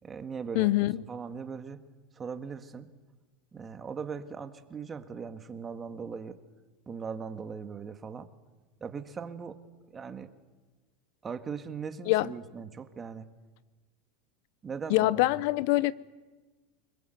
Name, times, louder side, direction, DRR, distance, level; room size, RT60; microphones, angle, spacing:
voice 1, 0.0-1.8 2.1-2.9 3.5-6.4 6.9-8.3 8.8-9.6 9.9-10.3 11.2-13.3 14.6-15.4, right 6 dB, 20° right, 1.7 m, -39 dB
voice 2, 0.5-0.9 12.1-12.3 14.9-15.9, left 18 dB, 65° left, 0.7 m, -24 dB
25.0 x 21.5 x 8.0 m
supercardioid pair, 120°, 0 cm